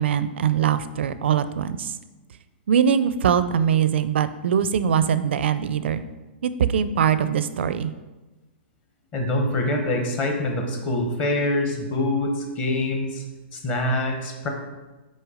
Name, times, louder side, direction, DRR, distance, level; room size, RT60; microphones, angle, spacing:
voice 1, 0.0-2.0 2.7-6.0 6.4-7.9, right 8 dB, 70° right, 13 dB, 0.5 m, -22 dB
voice 2, 9.1-13.2 13.5-14.5, left 1 dB, 20° left, 2 dB, 1.0 m, -25 dB
6.2 x 4.4 x 4.9 m, 1.2 s
hypercardioid pair, 160°, 6 cm